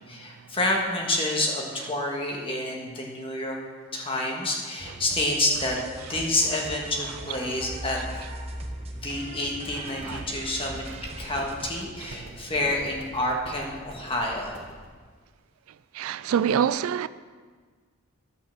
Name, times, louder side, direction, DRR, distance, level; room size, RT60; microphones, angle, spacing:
voice 1, 0.1-3.6 3.9-5.8 6.1-8.0 8.9-10.8 11.2-14.6, left 1 dB, 25° left, 1.6 m, -28 dB
sound 1, 4.8-11.7, right 1 dB, 30° right, 0.9 m, -39 dB
sound 2, 9.9-14.9, right 1 dB, 60° right, 2.3 m, -45 dB
voice 2, 16.0-17.1, right 8 dB, 75° right, 0.3 m, -25 dB
11.0 x 5.7 x 7.3 m
head